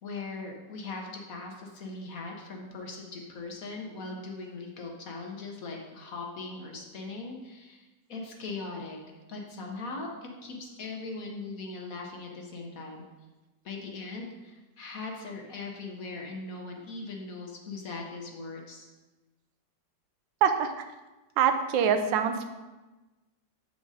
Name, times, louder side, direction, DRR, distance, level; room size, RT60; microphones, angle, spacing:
voice 1, 0.0-9.0 9.3-13.0 13.6-18.9, left 3 dB, 55° left, 1 dB, 1.3 m, -40 dB
voice 2, 20.4-20.9 21.4-22.4, right 7 dB, 90° right, 8 dB, 1.4 m, -24 dB
7.7 x 4.9 x 4.0 m, 1.1 s
omnidirectional pair, 2.0 m